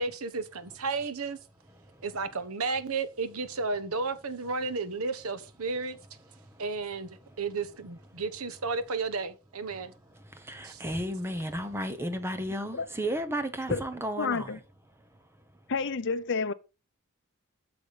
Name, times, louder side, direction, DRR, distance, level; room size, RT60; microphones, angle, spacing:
voice 1, 0.0-1.4 2.0-6.0 6.6-7.1 7.4-9.9 10.6-10.8, right 4 dB, 75° right, 1.1 m, -33 dB
voice 2, 10.5-14.5, right 1 dB, 10° right, 1.0 m, -33 dB
voice 3, 14.2-14.6 15.7-16.5, left 4 dB, 55° left, 0.7 m, -29 dB
8.3 x 7.0 x 4.2 m
head